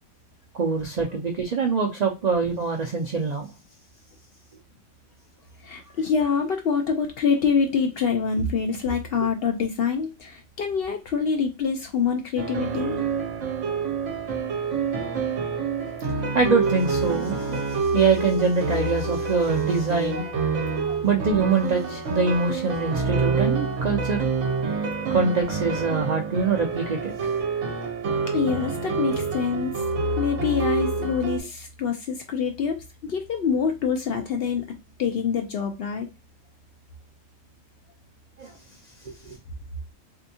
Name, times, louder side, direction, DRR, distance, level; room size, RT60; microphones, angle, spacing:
voice 1, 0.5-3.5 16.1-24.3 25.1-27.3 38.4-38.5 39.0-39.4, right 4 dB, 85° right, 2 dB, 0.3 m, -24 dB
voice 2, 5.6-13.0 28.3-29.8 30.2-32.8 33.0-34.6 35.0-36.1, left 6 dB, 65° left, 4 dB, 0.6 m, -25 dB
sound 1, 12.4-31.4, right 4 dB, 65° right, 1.1 m, -27 dB
3.4 x 2.7 x 2.6 m, 0.26 s
omnidirectional pair, 1.4 m